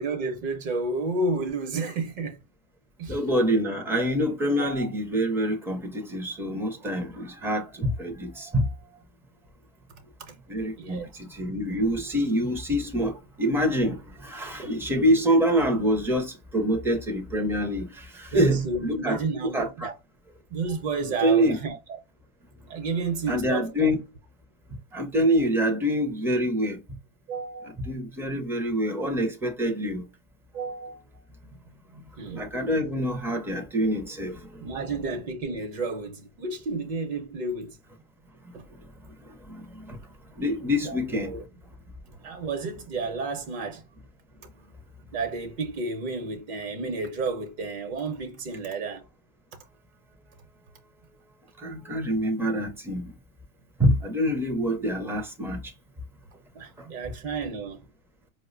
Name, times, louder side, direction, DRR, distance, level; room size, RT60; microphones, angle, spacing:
voice 1, 0.0-2.4 3.0-3.2 4.6-4.9 10.3-10.4 10.8-11.1 18.3-19.9 20.5-22.0 22.7-24.0 27.3-27.7 30.5-31.2 32.2-32.5 34.6-37.8 38.5-38.6 40.8-41.4 42.2-43.8 45.1-49.1 56.5-57.8, right 3 dB, 50° right, 0.8 m, -31 dB
voice 2, 3.1-8.7 10.5-19.2 19.5-19.9 21.2-21.6 23.3-24.0 24.9-26.8 27.9-30.0 32.3-34.6 39.5-40.0 40.4-41.3 51.6-53.0 53.8-55.6, equal, 5° right, 0.4 m, -26 dB
4.6 x 2.1 x 2.4 m
hypercardioid pair, 125°, 41 cm